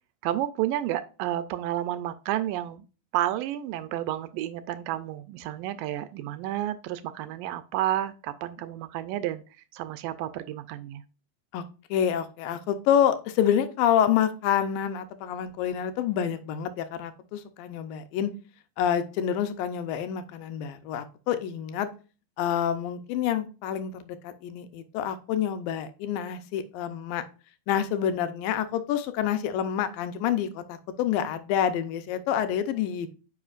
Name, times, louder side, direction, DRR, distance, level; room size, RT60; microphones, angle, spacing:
voice 1, 0.2-2.9 3.1-9.4 9.7-11.0, right 13 dB, 80° right, 12 dB, 2.1 m, -31 dB
voice 2, 11.9-18.3 18.8-21.9 22.4-27.2 27.7-33.1, left 9 dB, 80° left, 10 dB, 2.4 m, -27 dB
9.5 x 5.5 x 2.4 m, 0.34 s
omnidirectional pair, 4.2 m